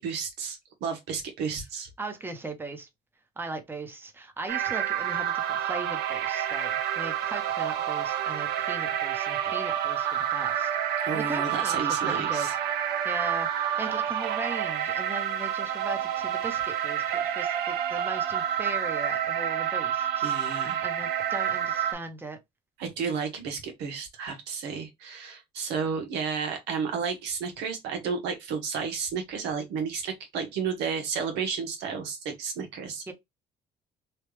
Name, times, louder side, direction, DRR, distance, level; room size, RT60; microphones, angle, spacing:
voice 1, 0.0-1.9 11.0-12.5 20.2-20.8 22.8-33.1, right 6 dB, 85° right, 1.1 m, -32 dB
voice 2, 2.0-2.9 3.4-12.5 13.0-20.3 20.6-22.4 33.1-33.2, right 3 dB, 10° right, 0.8 m, -38 dB
sound 1, 4.5-21.9, right 10 dB, 70° right, 0.5 m, -29 dB
3.2 x 2.3 x 3.1 m
cardioid pair, 110°, 17 cm